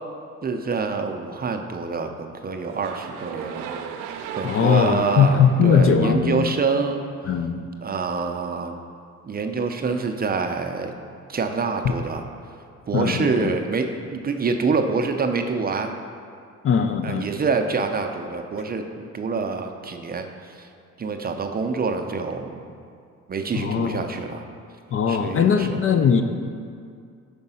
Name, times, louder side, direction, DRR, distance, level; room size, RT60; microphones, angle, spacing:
voice 1, 0.4-3.7 4.4-7.0 7.8-8.8 9.2-10.9 11.3-12.2 12.9-15.9 17.0-20.7 21.0-22.6 23.3-24.5 25.1-25.8, right 4 dB, 30° right, 5 dB, 0.5 m, -26 dB
sound 1, 2.6-6.8, right 7 dB, 90° right, 0.5 m, -36 dB
voice 2, 4.4-6.5 7.3-7.7 12.9-13.5 16.6-17.3 23.5-24.0 24.9-26.2, left 6 dB, 45° left, 7 dB, 0.4 m, -20 dB
5.2 x 4.8 x 5.5 m, 2.3 s
cardioid pair, 90°, 30 cm